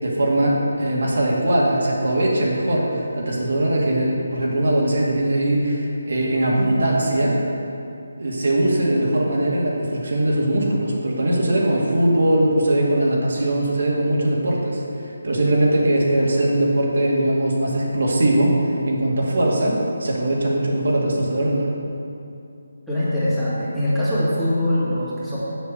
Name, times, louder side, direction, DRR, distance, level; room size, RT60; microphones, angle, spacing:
voice 1, 0.0-7.4 8.2-14.8 15.2-21.7, right 1 dB, 70° right, -4 dB, 2.2 m, -20 dB
voice 2, 22.9-25.4, left 1 dB, ahead, -14 dB, 2.2 m, -22 dB
7.1 x 6.5 x 6.6 m, 2.6 s
figure-of-eight pair, 160°, 0 cm